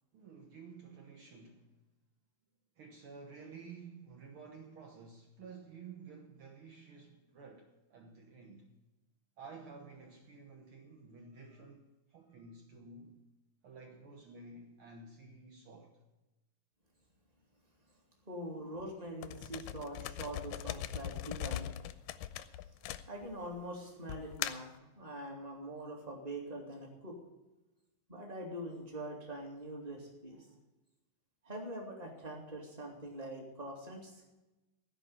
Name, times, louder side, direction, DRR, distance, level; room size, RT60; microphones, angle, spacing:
voice 1, 0.1-1.8 2.8-8.7 9.4-13.2 13.6-16.0 18.5-18.6 30.3-30.6, right 4 dB, 80° right, 1.2 m, -52 dB
voice 2, 18.3-21.7 23.1-27.2 28.1-30.5 31.4-34.2, right 1 dB, 15° right, 1.8 m, -44 dB
sound 1, 19.2-23.5 24.1-24.8, left 12 dB, 80° left, 2.2 m, -40 dB
16.0 x 5.3 x 10.0 m
omnidirectional pair, 4.2 m